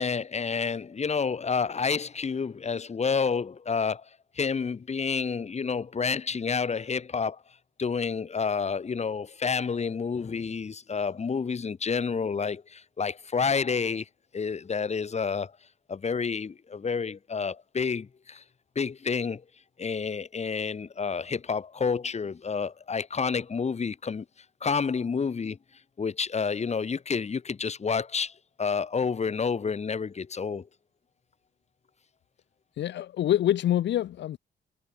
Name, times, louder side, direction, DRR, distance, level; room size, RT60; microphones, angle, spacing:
voice 1, 0.0-4.1 4.3-7.4 7.8-14.1 14.3-15.5 15.9-18.4 18.7-19.4 19.8-24.2 24.6-25.6 26.0-30.7, left 5 dB, 40° left, 5.0 m, -29 dB
voice 2, 32.8-34.4, left 12 dB, 80° left, 1.5 m, -25 dB
cardioid pair, 115°, 18 cm